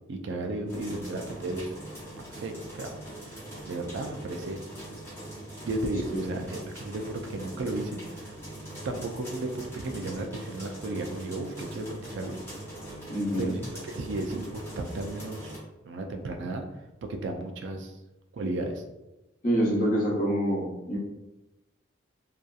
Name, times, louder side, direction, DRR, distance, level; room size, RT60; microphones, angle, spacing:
voice 1, 0.1-1.7 2.3-2.9 3.3-3.4 3.7-4.6 5.6-8.3 8.8-12.4 13.4-15.5 15.8-16.6 17.1-17.9 18.3-18.8, right 2 dB, 70° right, 4 dB, 0.3 m, -34 dB
sound 1, 0.7-15.6, right 1 dB, 15° left, 0.8 m, -42 dB
voice 2, 13.1-13.6 19.4-21.0, equal, 45° left, -4 dB, 0.8 m, -27 dB
2.7 x 2.3 x 2.3 m, 0.99 s
head